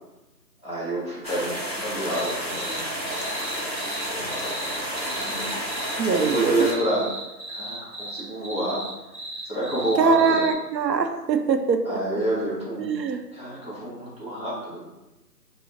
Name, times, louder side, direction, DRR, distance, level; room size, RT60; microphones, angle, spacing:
voice 1, 0.6-5.5 6.1-7.1 7.5-8.9 9.4-10.5 11.9-12.9 13.3-14.8, right 1 dB, 15° right, -14 dB, 1.0 m, -29 dB
sound 1, 1.2-6.7, equal, 40° left, 0.5 m, -31 dB
sound 2, 2.1-2.8 3.1-10.5, right 1 dB, 45° right, 1.1 m, -36 dB
voice 2, 6.0-6.5 10.0-12.2 12.8-13.2, right 5 dB, 90° right, 6 dB, 0.6 m, -23 dB
5.3 x 2.0 x 2.9 m, 1.0 s
figure-of-eight pair, 165°, 50 cm